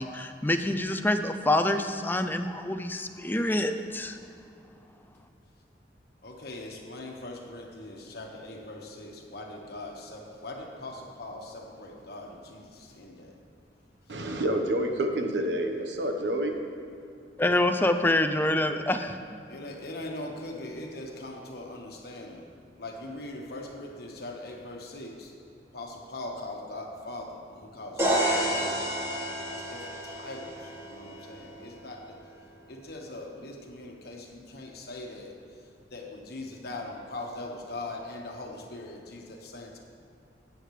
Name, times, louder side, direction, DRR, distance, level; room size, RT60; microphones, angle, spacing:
voice 1, 0.0-4.2 17.4-19.2, left 1 dB, 10° left, 8 dB, 0.4 m, -26 dB
voice 2, 6.2-13.3 19.5-22.5 22.8-25.3 25.7-28.8 29.5-32.2 32.7-35.3 35.9-39.8, left 2 dB, 60° left, 1 dB, 1.4 m, -41 dB
voice 3, 14.1-16.6, right 1 dB, 80° right, 4 dB, 1.1 m, -28 dB
sound 1, 28.0-31.8, equal, 15° right, 1.6 m, -30 dB
15.5 x 9.3 x 3.3 m, 2.6 s
head